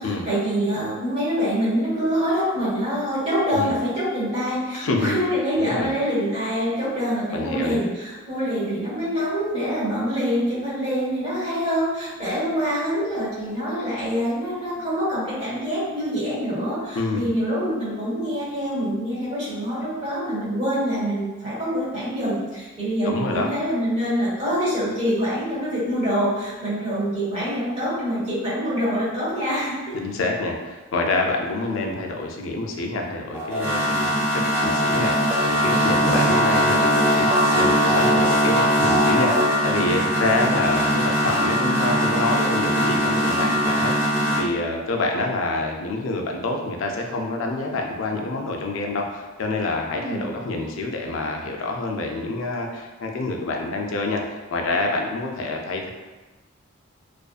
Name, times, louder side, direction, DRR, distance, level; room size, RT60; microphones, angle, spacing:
voice 1, 0.0-29.9 36.0-36.2 49.9-50.3, equal, 30° right, -10 dB, 1.3 m, -25 dB
voice 2, 4.7-5.2 5.6-5.9 7.3-7.8 16.9-17.3 23.0-23.5 29.9-54.2 54.5-55.9, left 2 dB, 70° left, 2 dB, 0.4 m, -27 dB
sound 1, 33.3-44.4, equal, 10° right, 0.4 m, -20 dB
2.5 x 2.4 x 2.3 m, 1.2 s
head